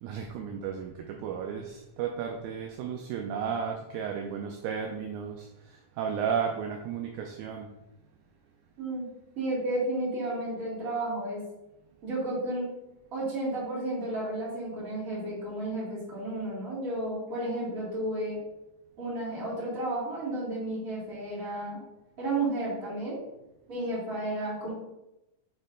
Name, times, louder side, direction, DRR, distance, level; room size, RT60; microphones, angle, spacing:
voice 1, 0.0-7.7, right 7 dB, 80° right, 2 dB, 1.9 m, -34 dB
voice 2, 8.8-9.1 9.4-11.4 12.0-12.7 13.1-18.4 19.0-21.8 22.2-23.2 23.7-24.7, right 1 dB, 30° right, -6 dB, 2.3 m, -32 dB
8.3 x 3.2 x 3.8 m, 0.93 s
omnidirectional pair, 3.8 m